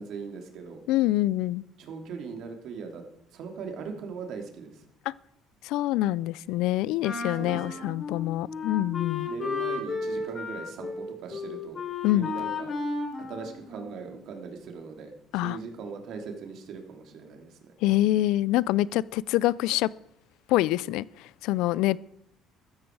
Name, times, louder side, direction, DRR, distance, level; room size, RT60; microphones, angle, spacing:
voice 1, 0.0-0.8 1.8-3.0 3.3-4.9 7.1-7.8 9.3-11.8 12.1-12.7 13.2-17.7, right 5 dB, 65° right, 3.2 m, -40 dB
voice 2, 0.9-1.6 5.1-5.2 5.6-9.3 12.0-12.3 15.3-15.6 17.8-19.9 20.5-22.0, left 15 dB, 80° left, 0.4 m, -25 dB
Wind instrument woodwind instrument, 7.0-14.2, left 4 dB, 40° left, 6.2 m, -34 dB
15.0 x 13.5 x 4.8 m
supercardioid pair, 75°, 0 cm